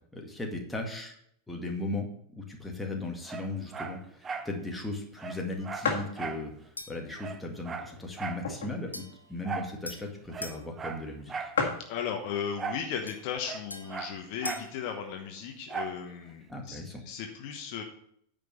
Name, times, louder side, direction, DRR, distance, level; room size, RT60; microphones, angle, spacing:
voice 1, 0.1-1.1 1.5-2.1 2.3-9.0 9.3-11.5 16.5-17.0, left 2 dB, 5° left, 0 dB, 2.0 m, -37 dB
Dog, 3.3-4.5 4.9-5.0 5.2-6.5 6.8-6.9 7.2-8.5 9.4-9.8 10.3-11.6 12.6-12.9 13.2-14.7 15.7-16.0 16.5-16.6, right 5 dB, 20° right, 0.8 m, -38 dB
sound 1, 4.9-5.0 5.3-5.4 5.8-6.2 6.8-6.9 7.7-8.9 9.3-9.4 9.5-9.8 10.6-10.7 10.9-11.0 11.2-11.3 11.5-11.9 12.8-13.2 13.7-13.8 14.0-14.8, left 5 dB, 60° left, 1.9 m, -33 dB
sound 2, 6.8-7.1 8.9-10.7 13.1-14.8, left 2 dB, 85° left, 0.9 m, -43 dB
voice 2, 11.9-17.8, left 7 dB, 45° left, 4 dB, 1.2 m, -36 dB
9.6 x 5.3 x 6.6 m, 0.68 s
figure-of-eight pair, 90°, 0 cm